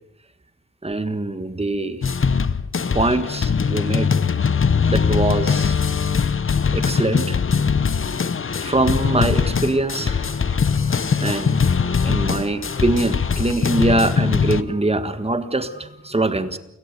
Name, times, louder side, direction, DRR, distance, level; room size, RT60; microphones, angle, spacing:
voice 1, 0.8-2.0 2.9-4.1 4.9-5.7 6.7-7.4 8.6-10.2 11.2-11.6 12.0-16.6, right 2 dB, 20° right, 10 dB, 1.6 m, -23 dB
sound 1, 2.0-14.6, left 6 dB, 45° left, 0.8 m, -21 dB
sound 2, 8.5-13.5, left 2 dB, 20° left, 3.7 m, -40 dB
29.0 x 17.5 x 6.8 m, 0.88 s
wide cardioid pair, 95°, 30 cm